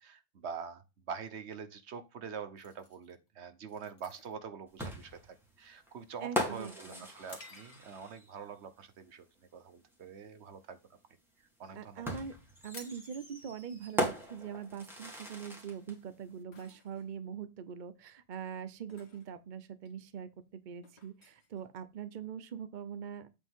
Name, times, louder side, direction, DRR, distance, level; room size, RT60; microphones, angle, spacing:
voice 1, 0.0-10.8 11.6-12.1, right 6 dB, 90° right, 1.3 m, -45 dB
sound 1, 2.6-8.2 8.7-8.9 9.4-9.8 10.1-11.3 11.5-11.6 11.8-12.0 12.3-22.3, left 3 dB, 75° left, 2.1 m, -58 dB
sound 2, 4.8-8.4 9.9-10.0 12.0-16.0, equal, ahead, 2.2 m, -39 dB
voice 2, 6.2-7.1 11.7-12.3 12.6-23.3, right 7 dB, 50° right, 0.8 m, -43 dB
8.2 x 5.3 x 3.6 m
omnidirectional pair, 1.1 m